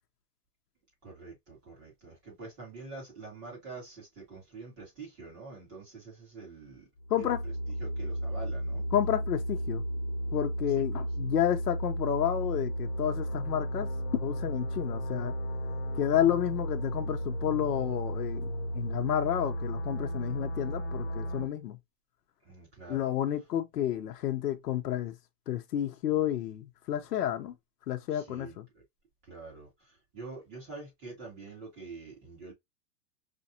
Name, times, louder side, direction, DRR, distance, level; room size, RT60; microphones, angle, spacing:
voice 1, 1.0-6.9 7.2-7.3 7.8-8.8 10.9-11.0 22.5-23.1 28.1-28.6 29.3-29.7 30.1-32.5, right 3 dB, 20° right, 2.0 m, -46 dB
sound 1, 7.0-21.4, equal, 40° left, 0.6 m, -34 dB
voice 2, 7.1-7.4 8.9-9.8 10.3-13.9 14.2-15.4 15.9-21.8 22.9-25.1 25.5-27.5 27.9-28.6, left 11 dB, 70° left, 0.8 m, -30 dB
5.1 x 2.5 x 2.7 m
supercardioid pair, 175°, 49 cm